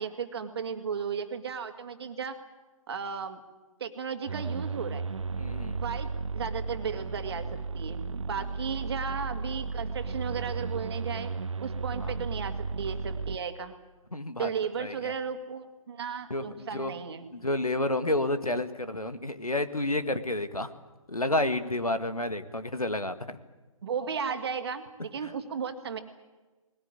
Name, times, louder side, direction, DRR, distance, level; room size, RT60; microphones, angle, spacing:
voice 1, 0.0-2.4 2.9-3.4 3.8-5.0 5.7-6.1 6.3-7.5 7.7-11.3 11.6-13.8 14.4-17.3 23.8-26.0, right 6 dB, 45° right, 7 dB, 2.3 m, -35 dB
sound 1, 4.3-13.4, right 4 dB, 60° right, 1.0 m, -34 dB
voice 2, 5.4-5.8 12.0-12.1 14.1-14.5 14.8-15.1 16.3-17.0 17.3-20.7 21.1-23.2 25.2-25.3, left 2 dB, 90° left, 10 dB, 1.8 m, -30 dB
20.5 x 19.0 x 9.8 m, 1.2 s
figure-of-eight pair, 140°, 18 cm